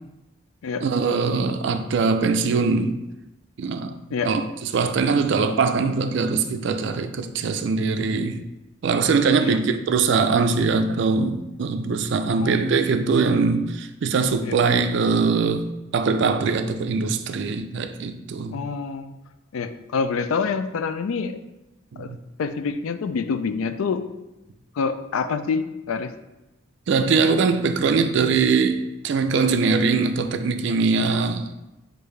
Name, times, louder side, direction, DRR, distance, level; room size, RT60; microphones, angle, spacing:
voice 1, 0.8-3.0 3.6-8.4 8.8-18.6 21.9-22.2 26.9-31.5, right 4 dB, 60° right, 0.3 m, -22 dB
voice 2, 12.4-12.7 14.4-14.5 18.5-19.1 19.5-21.4 22.0-24.1 24.8-26.1, left 5 dB, 85° left, 0.4 m, -27 dB
6.5 x 2.6 x 3.2 m
head